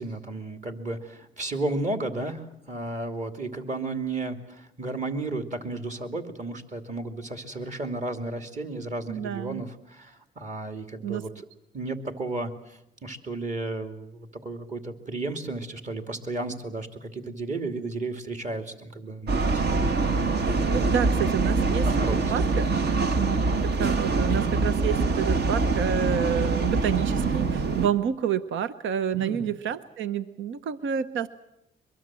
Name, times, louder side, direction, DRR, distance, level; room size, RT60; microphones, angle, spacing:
voice 1, 0.0-11.5 11.7-19.7 20.1-21.2 21.9-22.3 29.1-29.5, right 2 dB, 40° right, 6 dB, 2.7 m, -33 dB
voice 2, 9.1-9.6 11.0-11.2 20.5-21.9 22.3-22.7 23.0-31.3, right 9 dB, 75° right, 13 dB, 0.9 m, -29 dB
sound 1, 19.3-27.9, right 3 dB, 55° right, 1.5 m, -24 dB
23.0 x 22.5 x 7.6 m, 0.83 s
cardioid pair, 90°, 20 cm